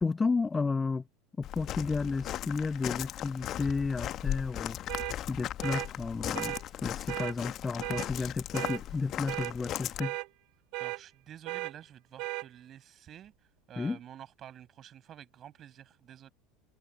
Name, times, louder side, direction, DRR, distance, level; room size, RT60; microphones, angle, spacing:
voice 1, 0.0-1.0 1.4-4.8 5.3-6.5 6.8-10.1 13.8-14.0, left 4 dB, 20° left, 1.3 m, -32 dB
Walk footsteps, 1.4-10.0, left 12 dB, 40° left, 1.5 m, -37 dB
sound 1, 4.9-5.2 5.6-5.9 6.3-6.6 7.1-7.3 7.8-8.1 8.5-8.8 9.3-9.5 10.0-10.3 10.7-11.0 11.5-11.7 12.2-12.5, right 28 dB, 55° right, 5.2 m, -35 dB
voice 2, 10.8-13.3 13.7-16.3, right 10 dB, 40° right, 7.7 m, -50 dB
figure-of-eight pair, 75°, 0 cm